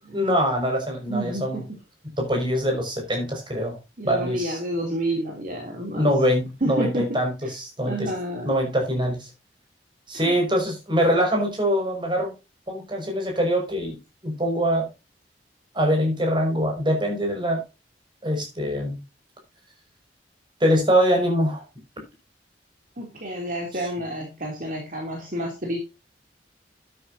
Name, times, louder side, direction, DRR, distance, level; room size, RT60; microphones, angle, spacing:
voice 1, 0.1-1.6 2.2-3.8 4.0-4.6 5.9-8.1 8.4-9.3 10.1-12.3 12.7-14.0 14.2-14.9 15.7-17.6 18.2-19.0 20.6-21.6, equal, 25° right, 2 dB, 6.0 m, -23 dB
voice 2, 1.1-1.7 4.0-6.1 6.6-7.1 7.9-8.5 10.1-10.4 23.0-25.8, right 1 dB, 50° right, 0 dB, 3.1 m, -29 dB
12.5 x 10.0 x 2.8 m, 0.27 s
head